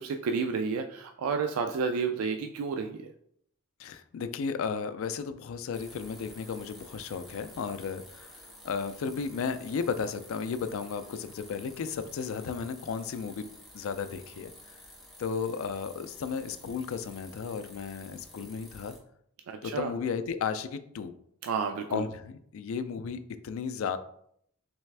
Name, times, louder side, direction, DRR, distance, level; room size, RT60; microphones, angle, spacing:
voice 1, 0.0-3.1 19.5-19.9 21.4-22.0, right 5 dB, 90° right, 6 dB, 0.3 m, -31 dB
voice 2, 3.8-13.5 13.7-14.5 15.2-19.0 19.6-21.1 21.9-24.0, left 6 dB, 70° left, 11 dB, 0.3 m, -34 dB
sound 1, 5.7-19.0, left 1 dB, ahead, 0.9 m, -51 dB
3.4 x 3.2 x 3.2 m, 0.68 s
head